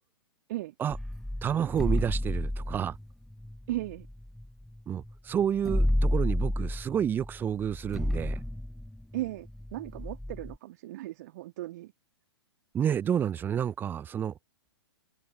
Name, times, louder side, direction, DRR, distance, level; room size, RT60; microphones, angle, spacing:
sound 1, 0.9-4.8 5.1-5.2 5.4-10.6, left 1 dB, ahead, 0.5 m, -31 dB
voice 1, 1.4-3.0 4.9-8.4 12.7-14.3, right 9 dB, 15° right, 0.9 m, -29 dB
voice 2, 3.7-4.1 9.1-11.9, right 16 dB, 40° right, 2.8 m, -36 dB
figure-of-eight pair, 115°, 14 cm